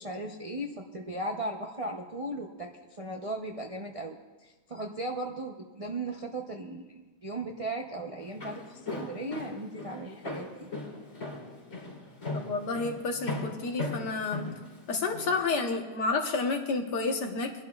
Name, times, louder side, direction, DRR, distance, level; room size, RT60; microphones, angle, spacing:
voice 1, 0.0-4.1 4.4-8.6 8.9-10.7, right 2 dB, 40° right, 0 dB, 0.4 m, -37 dB
Walk footsteps, 8.2-15.3, left 2 dB, 55° left, 3.6 m, -37 dB
voice 2, 12.3-14.5 14.9-17.6, left 3 dB, 75° left, 3 dB, 1.8 m, -30 dB
25.0 x 11.0 x 2.4 m, 1.2 s
omnidirectional pair, 1.8 m